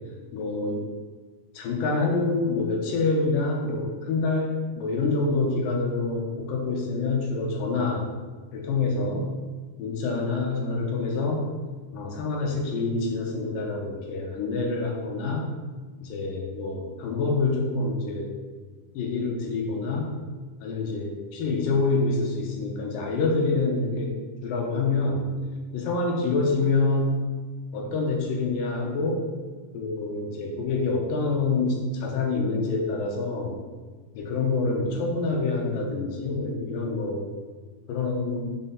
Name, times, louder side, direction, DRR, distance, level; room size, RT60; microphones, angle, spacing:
voice 1, 0.3-0.8 1.5-8.1 8.5-9.3 9.8-11.5 11.9-15.5 16.0-18.3 18.9-20.1 20.6-24.2 24.4-25.2 25.7-27.2 27.7-29.2 29.7-33.6 34.2-37.2 37.9-38.5, left 3 dB, 85° left, 0 dB, 2.6 m, -26 dB
6.2 x 4.1 x 3.9 m, 1.4 s
omnidirectional pair, 3.8 m